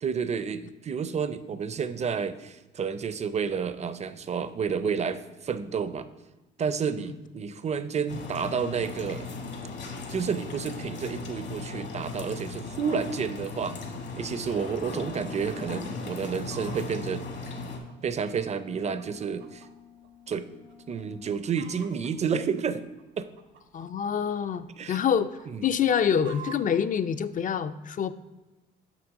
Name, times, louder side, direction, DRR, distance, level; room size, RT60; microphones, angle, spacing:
voice 1, 0.0-6.1 6.6-9.3 10.1-13.8 14.2-17.3 18.0-19.6 20.3-20.5 20.9-22.8 23.2-23.3 24.8-25.0 25.5-25.7, right 6 dB, 35° right, 13 dB, 0.4 m, -30 dB
sound 1, 8.1-17.8, left 3 dB, 60° left, 1.2 m, -37 dB
Wind instrument woodwind instrument, 14.8-21.6, left 7 dB, 80° left, 0.6 m, -52 dB
Chicken rooster, 16.0-16.9 17.5-19.7 20.0-20.1 20.7-21.0 21.2-22.1 22.8-24.6 25.0-26.8 27.5-27.6, right 8 dB, 75° right, 0.8 m, -47 dB
voice 2, 23.7-28.1, left 7 dB, 40° left, 12 dB, 0.4 m, -26 dB
6.1 x 5.8 x 3.6 m, 1.1 s
cardioid pair, 90°, 20 cm